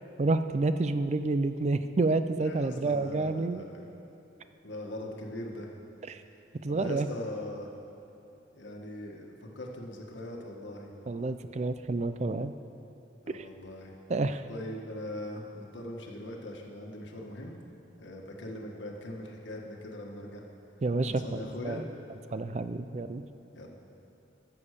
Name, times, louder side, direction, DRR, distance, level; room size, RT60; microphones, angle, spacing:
voice 1, 0.2-3.6 6.1-6.2 6.6-7.1 11.1-12.5 13.3-13.5 14.1-14.4 20.8-21.8 22.3-23.2, right 3 dB, 35° right, 11 dB, 0.4 m, -29 dB
voice 2, 2.4-3.8 4.6-5.7 6.7-7.7 8.5-10.9 13.2-14.0 14.5-17.5 18.0-20.4 21.1-21.8 23.5-23.7, left 1 dB, 80° left, 0 dB, 1.6 m, -40 dB
14.0 x 7.2 x 6.6 m, 2.9 s
head